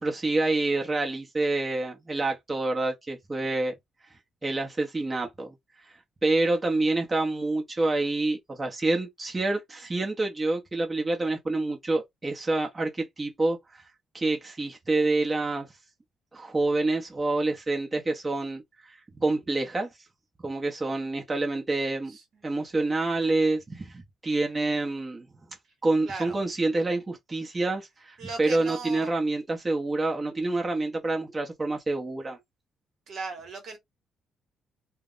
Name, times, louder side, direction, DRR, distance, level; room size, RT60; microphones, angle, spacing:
voice 1, 0.0-3.7 4.4-5.5 5.8-5.9 6.2-13.8 14.1-15.7 16.3-18.6 18.9-19.9 20.4-22.2 22.4-25.3 25.8-32.4, right 2 dB, 25° right, 0.8 m, -27 dB
voice 2, 22.1-22.4 26.0-26.4 28.2-29.1 33.1-33.8, right 4 dB, 65° right, 1.0 m, -38 dB
2.2 x 2.0 x 3.7 m
cardioid pair, 90°, 0 cm